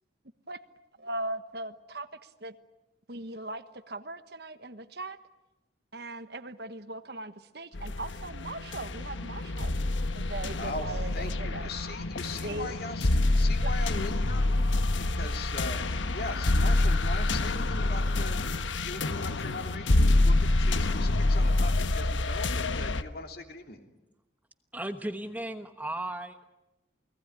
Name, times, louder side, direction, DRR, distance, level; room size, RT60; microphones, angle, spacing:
voice 1, 1.0-2.6 3.1-5.2 5.9-9.8 10.1-11.7 12.4-12.7 13.6-13.7, right 2 dB, 55° right, 10 dB, 1.3 m, -39 dB
sound 1, 7.7-23.0, left 2 dB, 85° left, 1.2 m, -27 dB
voice 2, 10.6-23.8, left 2 dB, 55° left, 4 dB, 3.0 m, -40 dB
voice 3, 24.7-26.4, right 1 dB, 10° right, 7 dB, 1.1 m, -35 dB
29.0 x 19.0 x 9.7 m, 1.0 s
head